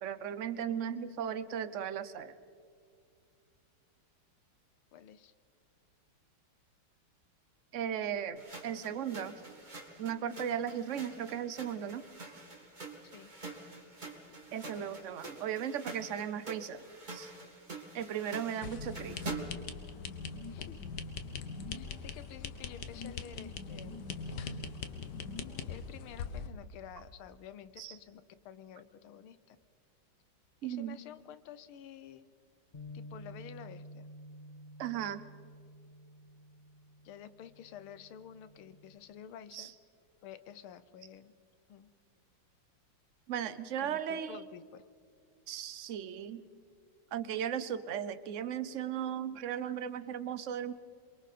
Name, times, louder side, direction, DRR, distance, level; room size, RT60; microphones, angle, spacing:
voice 1, 0.0-2.3 7.7-9.4 10.0-12.0 14.5-17.3 17.9-19.4 27.8-27.9 30.6-31.0 34.8-35.2 39.5-39.7 43.3-44.4 45.5-46.4 47.1-50.7, right 9 dB, 65° right, 12 dB, 0.7 m, -36 dB
voice 2, 4.9-5.3 13.0-13.3 20.5-20.9 21.7-24.8 25.7-29.6 30.6-32.2 32.9-34.1 37.0-39.7 40.2-41.3 41.7-41.9 43.8-44.9, left 9 dB, 80° left, 13 dB, 1.7 m, -50 dB
sound 1, 8.4-19.7, right 2 dB, 20° right, 2.1 m, -46 dB
sound 2, 18.6-26.5, left 5 dB, 55° left, 1.6 m, -41 dB
Bass guitar, 32.7-39.0, left 1 dB, 25° left, 1.3 m, -51 dB
27.5 x 23.5 x 4.2 m, 2.3 s
omnidirectional pair, 2.3 m